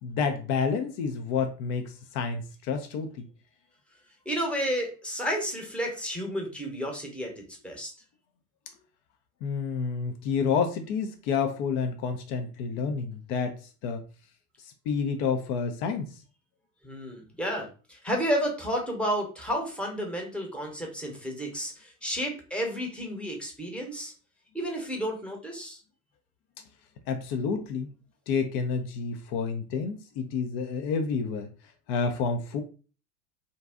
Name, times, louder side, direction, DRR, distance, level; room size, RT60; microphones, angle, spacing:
voice 1, 0.0-3.3 9.4-14.0 14.9-16.2 27.1-27.9 28.3-31.5 31.9-32.6, left 5 dB, 45° left, 6 dB, 0.5 m, -29 dB
voice 2, 4.2-7.9 16.8-24.1 24.5-25.8, equal, ahead, 0 dB, 0.9 m, -31 dB
2.6 x 2.2 x 3.5 m, 0.36 s
hypercardioid pair, 80°, 45 cm